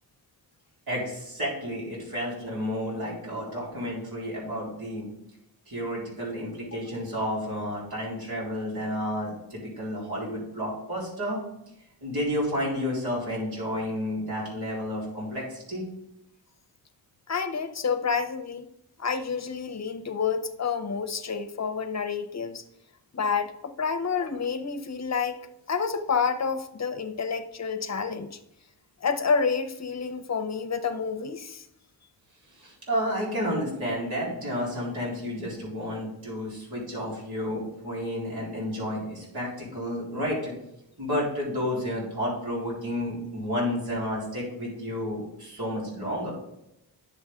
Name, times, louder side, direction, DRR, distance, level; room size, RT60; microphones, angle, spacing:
voice 1, 0.9-5.1 5.7-11.4 12.0-15.8 32.6-40.5 41.0-46.3, equal, 70° right, -6 dB, 4.0 m, -31 dB
voice 2, 17.3-18.7 19.0-22.6 23.1-28.4 29.0-31.6, left 5 dB, 40° left, 9 dB, 0.7 m, -29 dB
10.0 x 7.1 x 3.6 m, 0.84 s
wide cardioid pair, 145°, 39 cm